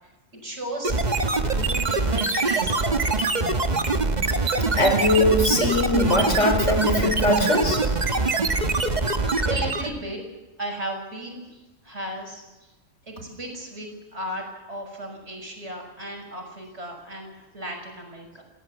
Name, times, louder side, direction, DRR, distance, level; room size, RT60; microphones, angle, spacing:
voice 1, 0.0-1.0 1.5-3.7 9.5-10.2 10.6-12.7 13.1-18.4, right 1 dB, 60° right, 2 dB, 6.4 m, -36 dB
sound 1, 0.8-10.0, right 3 dB, 35° right, 1.4 m, -23 dB
voice 2, 4.7-7.8, left 1 dB, 65° left, 5 dB, 4.6 m, -21 dB
27.0 x 17.0 x 7.2 m, 1.1 s
omnidirectional pair, 1.3 m